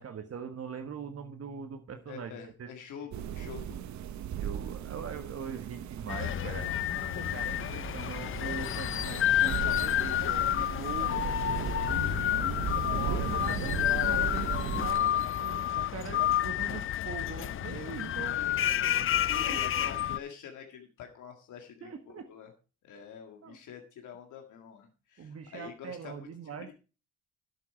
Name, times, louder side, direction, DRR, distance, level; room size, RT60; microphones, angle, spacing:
voice 1, 0.0-2.7 4.4-6.7 7.2-11.3 11.9-12.6 13.1-18.4 19.5-19.9 21.8-22.3 23.4-23.6 25.2-26.7, right 6 dB, 50° right, 7 dB, 1.5 m, -42 dB
voice 2, 2.1-3.8 17.6-22.5 22.8-26.2 26.7-26.8, left 7 dB, 80° left, 2 dB, 2.0 m, -46 dB
sound 1, 3.1-14.9, right 9 dB, 70° right, 0.9 m, -37 dB
sound 2, 6.1-20.2, left 12 dB, 45° left, 0.5 m, -30 dB
10.5 x 8.7 x 4.4 m, 0.33 s
cardioid pair, 90°, 30 cm